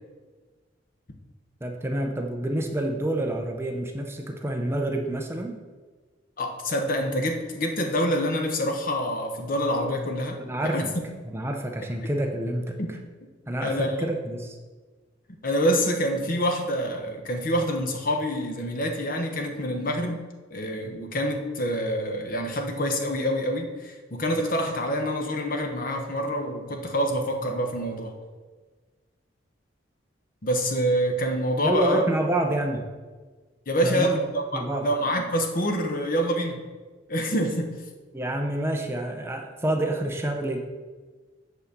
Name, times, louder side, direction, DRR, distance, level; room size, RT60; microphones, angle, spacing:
voice 1, 1.6-5.6 10.4-10.9 11.3-12.8 13.5-14.6 31.6-32.9 33.8-34.1 34.5-34.9 38.1-40.6, right 1 dB, 15° right, 3 dB, 0.6 m, -28 dB
voice 2, 6.4-10.9 12.8-12.9 13.6-14.0 15.4-20.2 20.5-28.1 30.4-32.0 33.7-36.6 37.1-37.7, equal, 50° left, 4 dB, 1.0 m, -26 dB
8.1 x 4.1 x 6.7 m, 1.4 s
head